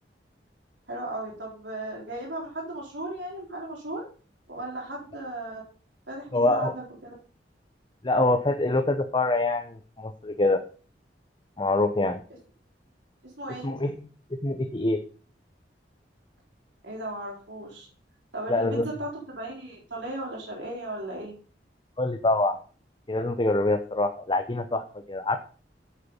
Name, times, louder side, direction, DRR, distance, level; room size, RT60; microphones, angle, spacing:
voice 1, 0.9-4.0 4.5-5.6 6.1-7.1 13.4-13.7 16.8-17.9 18.3-21.3, right 1 dB, 80° right, -3 dB, 4.0 m, -36 dB
voice 2, 6.3-6.7 8.0-10.6 11.6-12.2 13.6-13.9 14.4-15.0 18.5-18.9 22.0-22.6 23.1-25.4, left 2 dB, 25° left, 7 dB, 0.8 m, -25 dB
8.5 x 8.0 x 5.5 m, 0.38 s
head